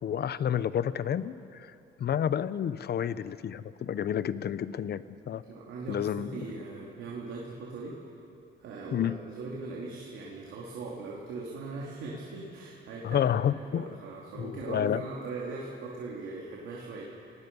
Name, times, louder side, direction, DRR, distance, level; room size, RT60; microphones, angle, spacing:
voice 1, 0.0-5.4 5.9-6.5 8.9-9.2 13.0-14.0 14.3-15.0, left 9 dB, 55° left, 15 dB, 0.8 m, -30 dB
voice 2, 5.5-7.9 8.6-13.2 13.7-17.3, right 3 dB, 80° right, -3 dB, 3.1 m, -40 dB
29.5 x 19.0 x 5.5 m, 2.7 s
cardioid pair, 90°, 20 cm